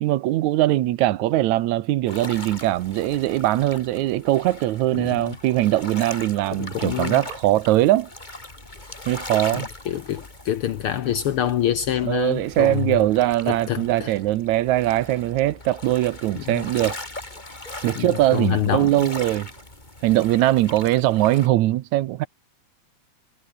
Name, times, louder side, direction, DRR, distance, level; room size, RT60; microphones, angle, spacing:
voice 1, 0.0-8.1 9.1-9.7 12.0-17.0 17.8-19.5 20.0-22.3, right 15 dB, 85° right, 2.2 m, -21 dB
sound 1, 2.1-21.5, left 2 dB, 15° left, 3.8 m, -40 dB
voice 2, 4.9-5.4 6.6-7.2 9.5-13.0 13.5-14.1 16.3-16.6 18.0-19.1, left 11 dB, 70° left, 1.4 m, -26 dB
omnidirectional pair, 3.3 m